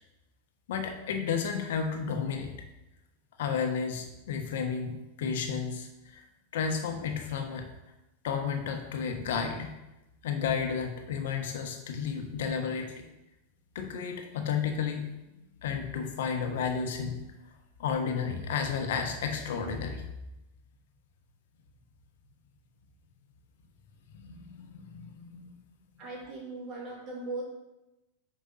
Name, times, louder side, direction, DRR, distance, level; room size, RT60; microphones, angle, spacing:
voice 1, 0.7-2.5 3.4-6.2 6.5-7.7 8.2-9.8 10.2-13.0 13.7-15.1 15.6-17.2 17.8-20.0 24.1-25.5, left 6 dB, 75° left, 4 dB, 1.2 m, -32 dB
voice 2, 26.0-27.4, right 2 dB, 35° right, -3 dB, 2.7 m, -38 dB
5.3 x 4.9 x 5.6 m, 0.96 s
supercardioid pair, 140°, 0 cm